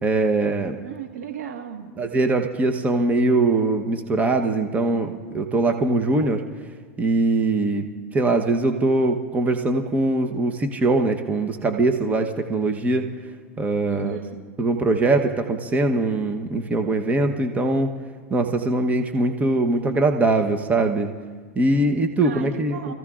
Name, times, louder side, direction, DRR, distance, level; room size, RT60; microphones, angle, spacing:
voice 1, 0.0-0.8 2.0-6.4 7.0-7.8 8.1-13.1 13.6-14.2 14.6-17.9 18.3-21.1 21.5-22.9, right 2 dB, 20° right, 5 dB, 1.0 m, -22 dB
voice 2, 0.8-1.9 13.9-14.4 22.2-22.9, right 8 dB, 80° right, 4 dB, 1.7 m, -35 dB
29.0 x 15.0 x 2.5 m, 1.5 s
hypercardioid pair, 110°, 8 cm